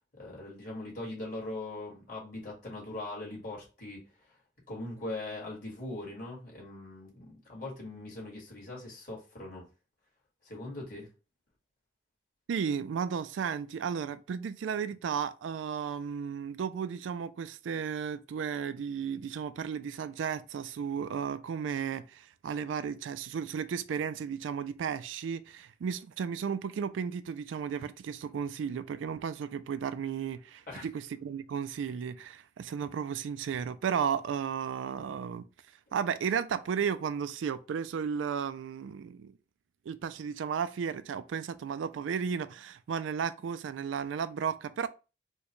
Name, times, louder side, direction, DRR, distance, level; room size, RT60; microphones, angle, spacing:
voice 1, 0.2-4.0 4.7-9.7 10.4-11.1 30.7-30.9, left 2 dB, 45° left, 1.8 m, -41 dB
voice 2, 12.5-35.5 35.9-39.3 39.9-44.9, right 7 dB, 90° right, 0.3 m, -34 dB
4.5 x 2.2 x 3.0 m
head